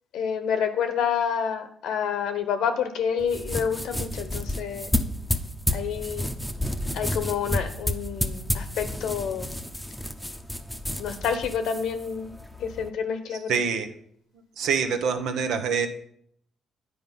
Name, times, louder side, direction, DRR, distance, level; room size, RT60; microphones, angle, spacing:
voice 1, 0.1-5.0 5.7-6.3 6.9-9.6 11.0-12.3 12.6-13.6, left 7 dB, 80° left, 8 dB, 1.0 m, -28 dB
sound 1, 3.2-12.9, left 1 dB, 5° left, 0.7 m, -31 dB
voice 2, 13.5-13.9 14.6-15.9, right 6 dB, 80° right, 7 dB, 0.9 m, -25 dB
9.6 x 4.7 x 5.4 m, 0.68 s
cardioid pair, 90°, 0 cm